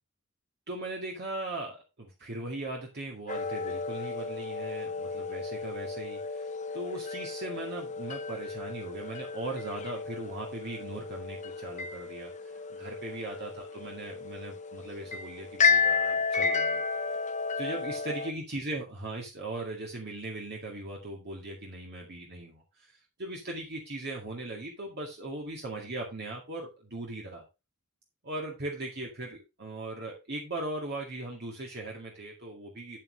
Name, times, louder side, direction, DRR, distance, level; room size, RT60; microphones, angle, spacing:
voice 1, 0.7-12.3 12.7-16.8 17.6-27.4 28.2-33.0, right 2 dB, 50° right, -1 dB, 2.2 m, -39 dB
sound 1, 3.3-18.3, left 5 dB, 35° left, 1.0 m, -32 dB
8.9 x 8.7 x 3.3 m, 0.25 s
head